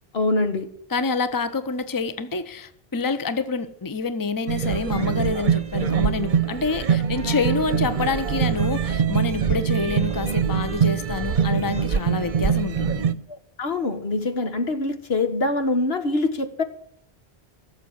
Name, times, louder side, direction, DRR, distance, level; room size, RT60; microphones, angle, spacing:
voice 1, 0.1-0.7 13.3-16.6, left 2 dB, 70° left, 1.6 m, -24 dB
voice 2, 0.9-13.0, left 4 dB, 20° left, 0.8 m, -27 dB
sound 1, 4.5-13.1, right 7 dB, 50° right, 0.9 m, -23 dB
17.0 x 7.3 x 9.5 m
omnidirectional pair, 1.1 m